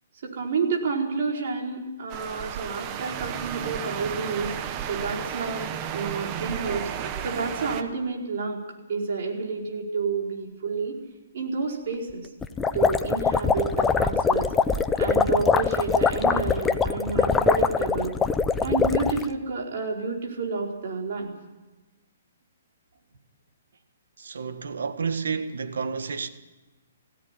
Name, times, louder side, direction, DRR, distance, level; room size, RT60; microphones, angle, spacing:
voice 1, 0.2-4.6 4.9-6.9 7.2-8.6 8.9-11.0 11.3-12.3 12.7-14.5 15.0-18.1 18.6-21.3, right 4 dB, 55° right, 4.7 m, -29 dB
sound 1, 2.1-7.8, right 9 dB, 25° right, 1.0 m, -33 dB
sound 2, 12.4-19.3, left 5 dB, 10° left, 0.7 m, -23 dB
voice 2, 24.2-26.3, right 5 dB, 85° right, 1.7 m, -30 dB
20.0 x 16.5 x 9.9 m
hypercardioid pair, 165°, 0 cm